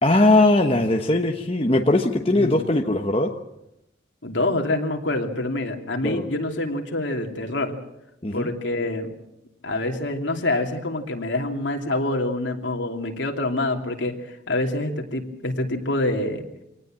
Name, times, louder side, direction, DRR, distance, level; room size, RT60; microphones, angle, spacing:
voice 1, 0.0-3.3 6.0-6.3 8.2-8.5, left 2 dB, 30° left, 3 dB, 1.1 m, -20 dB
voice 2, 2.3-2.6 4.2-7.7 8.3-9.1 9.6-16.4, left 2 dB, 70° left, 3 dB, 2.9 m, -26 dB
24.5 x 18.5 x 7.6 m, 0.86 s
head